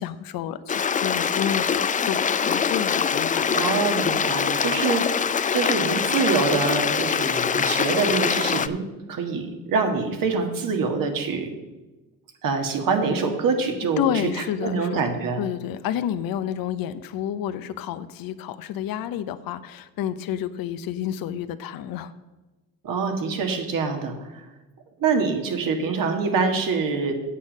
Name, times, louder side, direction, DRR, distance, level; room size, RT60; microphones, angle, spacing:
voice 1, 0.0-3.8 14.0-15.0 15.4-22.1, left 10 dB, 70° left, 13 dB, 0.7 m, -30 dB
Stream, 0.7-8.7, left 6 dB, 20° left, 0.4 m, -23 dB
voice 2, 3.5-5.0 5.5-11.5 12.4-14.1 14.6-15.4 22.8-24.4 25.0-27.1, right 4 dB, 60° right, 4 dB, 1.8 m, -25 dB
8.5 x 7.1 x 6.4 m, 1.1 s
supercardioid pair, 75°, 37 cm